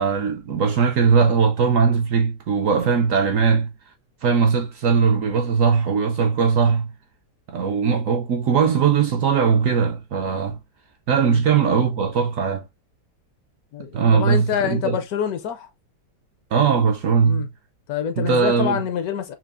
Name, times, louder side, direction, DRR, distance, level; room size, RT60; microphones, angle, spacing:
voice 1, 0.0-3.7 4.2-6.9 7.5-10.6 11.1-12.7 13.9-15.0 16.5-17.5 18.2-18.8, right 6 dB, 65° right, 0.8 m, -19 dB
voice 2, 13.7-15.7 17.2-17.5 17.9-19.3, left 8 dB, 70° left, 1.0 m, -26 dB
5.8 x 2.3 x 2.5 m
omnidirectional pair, 1.8 m